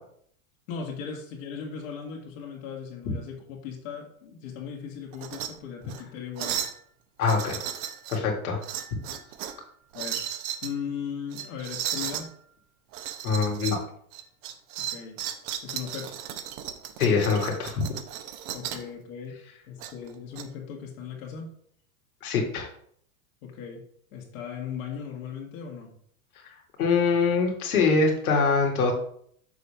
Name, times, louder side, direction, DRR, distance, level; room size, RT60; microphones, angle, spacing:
voice 1, 0.7-6.6 9.9-10.3 10.6-12.3 14.8-15.2 15.6-16.2 18.5-21.5 23.4-23.8 24.1-25.9, left 7 dB, 65° left, -1 dB, 1.9 m, -38 dB
sound 1, 5.1-5.5 5.8-6.0 6.4-6.8 7.2-8.2 8.6-9.6 9.9-10.7 11.3-12.3 12.9-13.8 14.1-18.9 19.8-20.4, right 11 dB, 55° right, 0.9 m, -35 dB
voice 2, 7.2-7.6 8.1-8.6 13.2-13.8 17.0-17.8 22.2-22.7 26.4-28.9, left 4 dB, 90° left, 1 dB, 2.2 m, -24 dB
6.8 x 3.3 x 5.6 m, 0.63 s
supercardioid pair, 120°, 43 cm